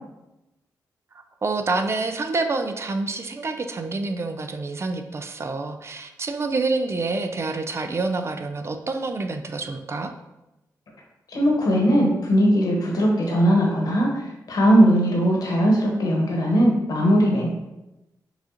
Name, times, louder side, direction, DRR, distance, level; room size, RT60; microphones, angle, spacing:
voice 1, 1.4-10.1, right 3 dB, 40° right, 7 dB, 0.4 m, -27 dB
voice 2, 11.3-17.5, equal, 65° left, -2 dB, 1.2 m, -19 dB
5.8 x 2.5 x 2.8 m, 0.96 s
cardioid pair, 70°, 7 cm